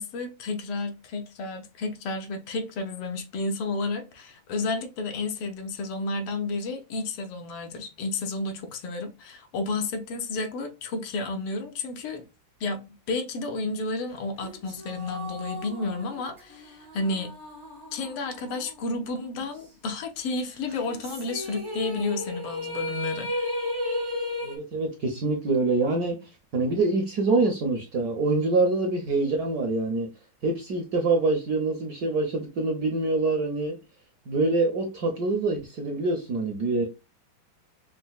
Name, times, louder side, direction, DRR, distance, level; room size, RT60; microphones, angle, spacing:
voice 1, 0.0-12.2 12.6-12.8 13.1-17.3 17.9-23.5, left 3 dB, 85° left, 1.7 m, -31 dB
sound 1, 14.4-19.0 19.3-19.4 20.7-24.6, left 1 dB, 35° right, 0.4 m, -34 dB
voice 2, 24.4-26.2 26.5-30.1 30.4-33.8 34.3-36.8, right 3 dB, 65° right, 0.9 m, -25 dB
5.3 x 2.0 x 2.3 m
omnidirectional pair, 2.3 m